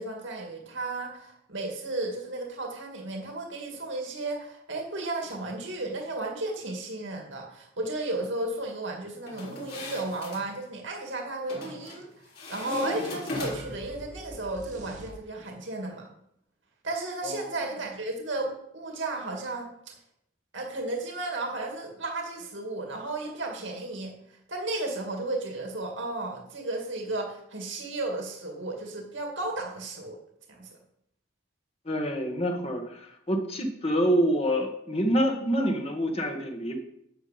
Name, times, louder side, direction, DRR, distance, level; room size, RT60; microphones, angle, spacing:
voice 1, 0.0-12.1 12.5-16.1 16.8-19.7 20.5-24.1 24.5-30.2 30.5-30.8, right 2 dB, 70° right, 1 dB, 2.3 m, -34 dB
sound 1, 9.3-10.5 11.5-12.0 12.4-13.8, left 2 dB, 50° left, 3.8 m, -37 dB
sound 2, 13.3-15.6, right 1 dB, 40° right, 1.7 m, -45 dB
voice 2, 31.9-36.8, equal, 30° left, 3 dB, 1.7 m, -27 dB
11.5 x 7.5 x 5.2 m, 0.76 s
head